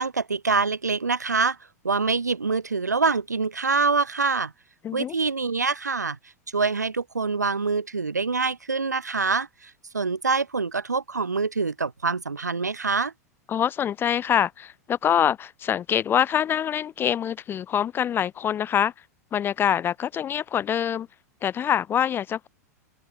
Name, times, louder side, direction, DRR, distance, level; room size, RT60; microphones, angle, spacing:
voice 1, 0.0-1.6 1.8-4.5 4.9-6.2 6.5-13.1, right 4 dB, 85° right, 1.0 m, -25 dB
voice 2, 4.8-5.2 13.5-18.9 19.3-21.1 21.4-22.5, left 9 dB, 25° left, 0.7 m, -25 dB
figure-of-eight pair, 95°, 9 cm